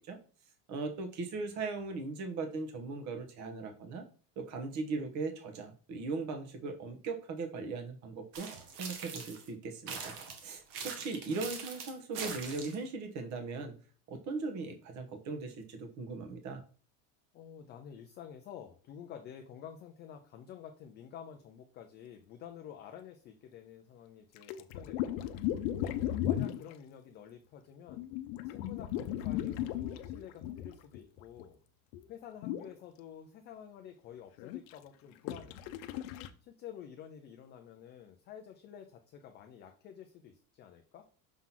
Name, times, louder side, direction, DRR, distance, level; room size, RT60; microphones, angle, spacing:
voice 1, 0.7-4.0 4.4-8.5 8.8-10.1 10.4-13.7 14.1-16.6, right 4 dB, 40° right, 6 dB, 1.3 m, -39 dB
sound 1, 8.3-9.5 9.9-12.9, right 5 dB, 80° right, 1.7 m, -42 dB
voice 2, 17.3-25.4 26.2-28.1 28.4-31.6 32.1-35.6 36.4-41.0, left 9 dB, 25° left, 5 dB, 0.3 m, -50 dB
sound 2, 24.4-26.7 27.9-31.5 31.9-32.0 32.4-32.8 34.4-34.7 35.3-36.3, left 12 dB, 65° left, 0.8 m, -36 dB
6.0 x 3.8 x 5.7 m, 0.40 s
cardioid pair, 165°, 45 cm